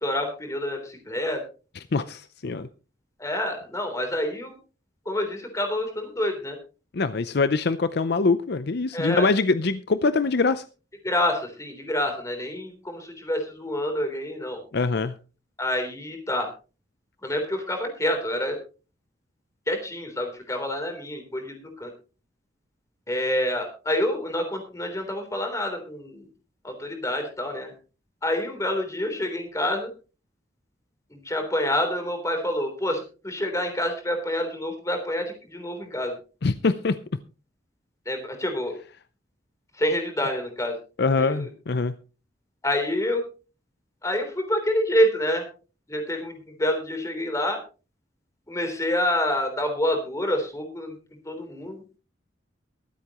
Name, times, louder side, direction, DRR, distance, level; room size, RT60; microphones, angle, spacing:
voice 1, 0.0-1.4 3.2-4.5 5.1-6.6 8.9-9.3 11.0-14.6 15.6-16.5 17.2-18.6 19.7-21.9 23.1-26.3 26.6-27.7 28.2-29.9 31.1-36.1 38.1-38.8 39.8-40.8 41.2-41.5 42.6-43.2 44.0-45.4 45.9-47.6 48.5-50.9 51.3-51.8, left 1 dB, 15° left, 3.5 m, -27 dB
voice 2, 1.9-2.7 6.9-10.6 14.7-15.2 36.4-37.0 41.0-41.9, left 4 dB, 60° left, 0.6 m, -23 dB
23.0 x 8.4 x 3.0 m
head